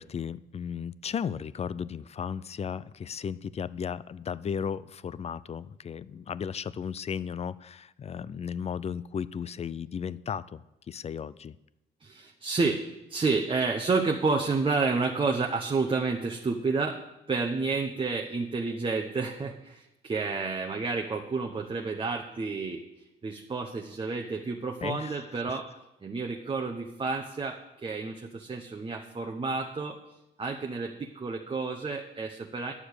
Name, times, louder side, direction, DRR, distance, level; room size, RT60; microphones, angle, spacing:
voice 1, 0.0-11.6 24.8-25.2 25.5-25.6, left 7 dB, 35° left, 18 dB, 0.4 m, -35 dB
voice 2, 12.0-12.8 13.1-17.0 17.3-22.8 23.2-25.7 26.0-30.0 30.4-32.7, right 4 dB, 25° right, 1 dB, 0.9 m, -30 dB
9.8 x 6.9 x 6.5 m, 0.92 s
cardioid pair, 90°, 20 cm